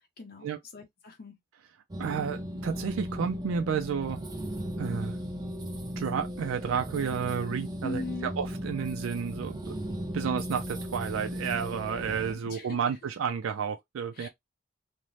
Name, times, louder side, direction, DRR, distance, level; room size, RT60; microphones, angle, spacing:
voice 1, 0.2-1.4 7.8-8.3 12.4-12.8 14.1-14.3, left 2 dB, 45° left, 0.6 m, -39 dB
sound 1, 1.9-12.3, equal, 20° right, 0.4 m, -36 dB
voice 2, 2.0-4.2 4.8-5.2 6.0-9.7 10.1-14.3, right 7 dB, 80° right, 0.3 m, -31 dB
2.6 x 2.1 x 3.0 m
head